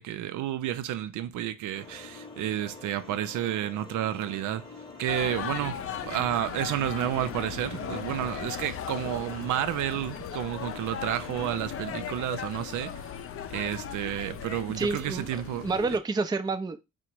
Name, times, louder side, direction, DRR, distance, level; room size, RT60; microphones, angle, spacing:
voice 1, 0.0-4.6 5.0-13.0 13.5-15.7, right 12 dB, 80° right, 0.5 m, -31 dB
sound 1, 1.7-11.9, left 3 dB, 15° left, 1.0 m, -47 dB
sound 2, 5.1-16.0, left 8 dB, 50° left, 0.5 m, -37 dB
voice 2, 14.8-16.8, right 3 dB, 15° right, 0.4 m, -29 dB
3.8 x 2.1 x 4.5 m
cardioid pair, 90°, 30 cm